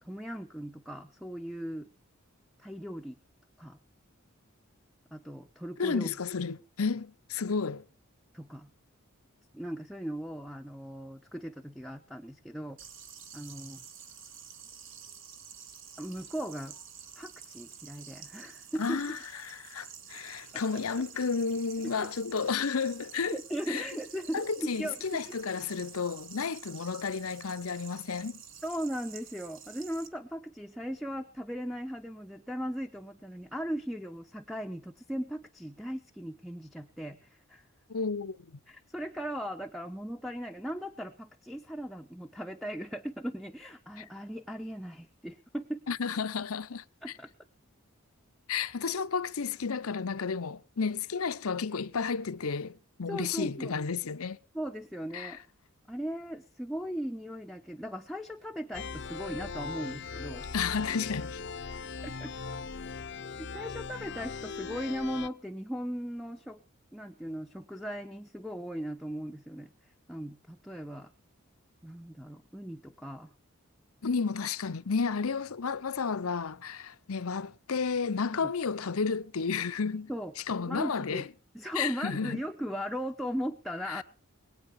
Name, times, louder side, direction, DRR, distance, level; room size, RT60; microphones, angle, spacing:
voice 1, 0.0-1.9 2.6-3.2 3.6-3.8 5.1-6.2 8.3-8.7 9.5-12.8 13.3-13.8 16.0-16.8 17.2-19.2 20.5-20.6 22.0-22.1 23.3-25.2 28.6-37.6 38.7-45.8 47.0-47.3 53.1-53.8 54.5-55.4 55.9-60.5 62.0-62.3 63.4-66.6 66.9-69.7 70.1-71.1 71.8-73.3 78.4-78.5 80.1-80.3 80.7-81.2 81.5-84.0, equal, ahead, 0.7 m, -38 dB
voice 2, 5.8-7.8 18.8-23.4 23.7-23.9 24.3-28.4 37.9-38.6 44.0-44.1 45.9-46.8 48.5-54.4 55.1-55.4 60.5-61.4 74.0-80.1 80.5-81.3 81.8-82.4 83.9-84.0, left 5 dB, 85° left, 0.8 m, -32 dB
sound 1, 12.8-30.1, right 7 dB, 60° right, 1.8 m, -49 dB
sound 2, 58.7-65.3, left 5 dB, 50° left, 0.7 m, -39 dB
21.5 x 8.9 x 5.7 m
head